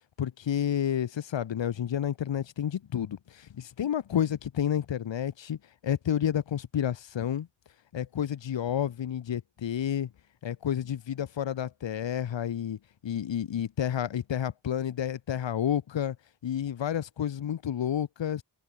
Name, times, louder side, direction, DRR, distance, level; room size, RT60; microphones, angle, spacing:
voice 1, 0.2-5.6 5.8-7.5 7.9-10.1 10.4-16.2 16.4-18.4, left 9 dB, 75° left, 0.6 m, -30 dB
wide cardioid pair, 50°, 45 cm